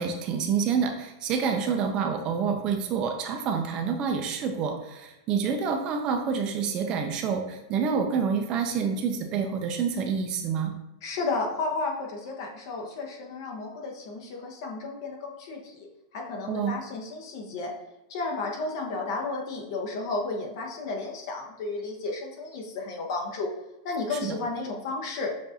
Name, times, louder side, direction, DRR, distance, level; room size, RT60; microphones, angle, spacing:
voice 1, 0.0-10.7 16.5-16.8 24.2-24.3, right 6 dB, 30° right, 4 dB, 0.4 m, -28 dB
voice 2, 11.0-15.9 16.1-17.7 18.1-23.5 23.8-25.3, left 3 dB, 55° left, 1 dB, 0.9 m, -33 dB
6.6 x 2.5 x 2.7 m, 0.93 s
supercardioid pair, 150°, 3 cm